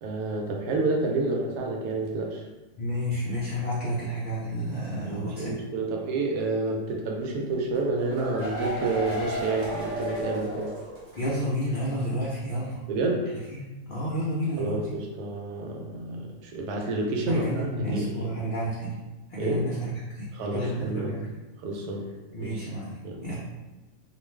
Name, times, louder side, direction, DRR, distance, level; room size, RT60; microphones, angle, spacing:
voice 1, 0.0-2.5 5.0-10.7 12.9-13.3 14.6-18.3 19.4-19.7 20.3-21.2 21.6-22.1 22.4-22.6 23.0-23.3, right 2 dB, 80° right, 0 dB, 1.1 m, -29 dB
voice 2, 2.8-5.6 11.1-12.8 13.5-13.6 13.9-14.8 17.2-19.0 19.3-21.2 22.3-23.4, equal, 85° left, -8 dB, 0.4 m, -30 dB
sound 1, 7.7-11.4 11.7-11.8 12.1-12.2, equal, 50° right, 0.8 m, -33 dB
2.4 x 2.4 x 3.2 m, 1.1 s
omnidirectional pair, 1.7 m